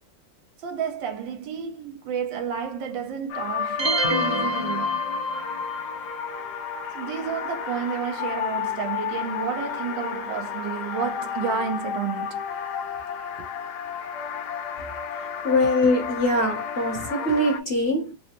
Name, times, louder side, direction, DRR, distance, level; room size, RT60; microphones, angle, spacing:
voice 1, 0.6-5.0 6.9-12.4 13.4-13.5, right 7 dB, 85° right, 1.5 m, -31 dB
sound 1, 3.3-17.6, left 7 dB, 70° left, 1.2 m, -31 dB
sound 2, 3.8-5.6, right 1 dB, 45° right, 1.1 m, -27 dB
voice 2, 15.1-18.1, left 1 dB, 40° left, 0.9 m, -23 dB
3.9 x 2.1 x 2.9 m
omnidirectional pair, 2.0 m